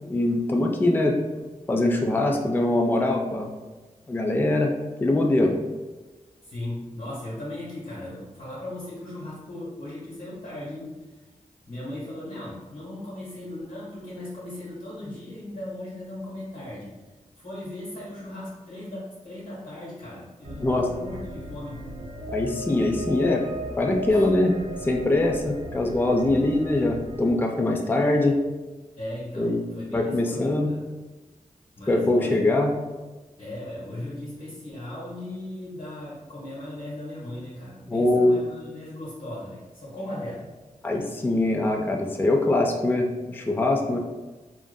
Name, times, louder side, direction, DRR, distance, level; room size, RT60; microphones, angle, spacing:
voice 1, 0.0-1.2 1.7-3.5 4.1-4.7 5.0-5.5 20.6-20.9 22.3-23.4 23.8-28.4 29.4-29.6 29.9-30.7 31.9-32.7 37.9-38.4 40.8-44.0, left 2 dB, 15° left, 1 dB, 0.3 m, -23 dB
voice 2, 6.4-10.9 11.7-16.9 17.4-21.8 24.1-24.2 29.0-30.8 31.8-32.4 33.4-40.4, left 1 dB, 60° left, -10 dB, 1.2 m, -37 dB
sound 1, 20.4-27.3, equal, 60° right, 0.4 m, -37 dB
2.5 x 2.5 x 2.2 m, 1.2 s
cardioid pair, 40°, 14 cm